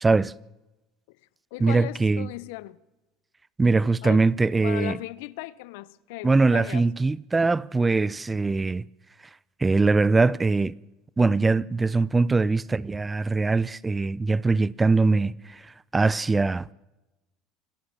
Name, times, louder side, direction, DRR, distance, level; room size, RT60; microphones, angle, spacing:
voice 1, 0.0-0.3 1.6-2.3 3.6-5.0 6.2-8.9 9.6-10.8 11.2-15.6 15.9-16.7, right 3 dB, 20° right, 0.6 m, -22 dB
voice 2, 1.5-2.8 4.0-6.8, left 19 dB, 75° left, 0.8 m, -37 dB
25.5 x 14.0 x 7.4 m
hypercardioid pair, 80°, 0 cm